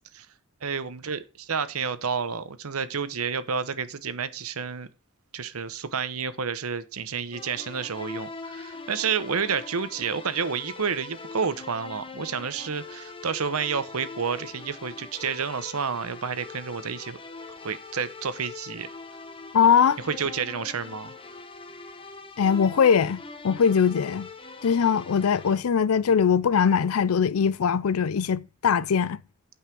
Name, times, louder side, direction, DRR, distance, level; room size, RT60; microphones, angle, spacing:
voice 1, 0.6-4.9 5.3-17.2 17.6-18.9 20.0-21.1, right 6 dB, 85° right, 0.9 m, -30 dB
sound 1, 7.3-25.6, left 3 dB, 25° left, 1.1 m, -42 dB
voice 2, 19.5-20.0 22.4-23.2 23.4-24.3 24.6-29.2, left 7 dB, 80° left, 0.5 m, -21 dB
8.7 x 5.6 x 6.1 m
head